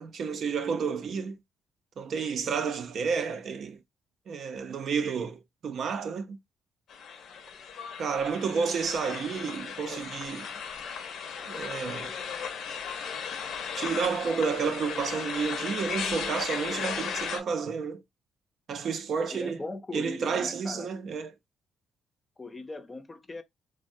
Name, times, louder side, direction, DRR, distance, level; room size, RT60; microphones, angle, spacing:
voice 1, 0.0-1.4 2.0-3.8 4.3-6.4 8.0-10.5 11.5-12.1 13.7-18.0 18.7-19.6 19.9-21.3, right 5 dB, 60° right, 0.5 m, -31 dB
sound 1, 6.9-17.4, left 6 dB, 75° left, 0.6 m, -36 dB
voice 2, 19.3-20.9 22.4-23.4, left 2 dB, 20° left, 0.5 m, -39 dB
3.3 x 2.1 x 2.6 m
cardioid pair, 90°, 0 cm